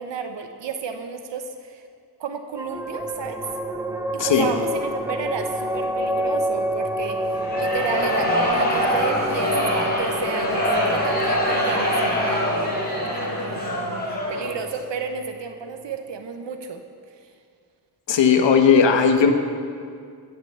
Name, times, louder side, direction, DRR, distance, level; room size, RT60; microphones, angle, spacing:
voice 1, 0.0-1.8 2.2-3.4 4.1-12.7 13.1-16.8, right 5 dB, 80° right, 6 dB, 0.9 m, -32 dB
sound 1, 2.5-15.4, right 1 dB, 5° right, 0.9 m, -29 dB
voice 2, 4.2-4.5 18.1-19.3, left 6 dB, 80° left, 6 dB, 1.2 m, -16 dB
sound 2, 7.3-14.6, left 1 dB, 20° left, 4.0 m, -24 dB
14.5 x 6.9 x 6.8 m, 2.2 s
cardioid pair, 55°, 43 cm